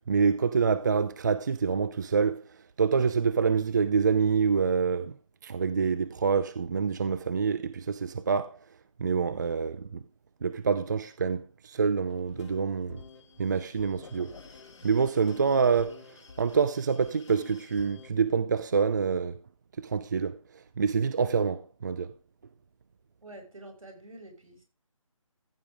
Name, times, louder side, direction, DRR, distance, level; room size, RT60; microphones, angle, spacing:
voice 1, 0.1-2.4 2.8-5.1 5.4-8.6 9.0-10.0 10.4-13.0 13.4-14.3 14.8-16.0 16.4-19.4 19.8-20.3 20.8-22.1, right 5 dB, 35° right, 0.5 m, -26 dB
sound 1, 12.1-18.1, left 5 dB, 60° left, 2.3 m, -49 dB
voice 2, 23.2-24.6, right 1 dB, 80° right, 5.6 m, -48 dB
14.5 x 6.9 x 3.5 m
figure-of-eight pair, 165°, 17 cm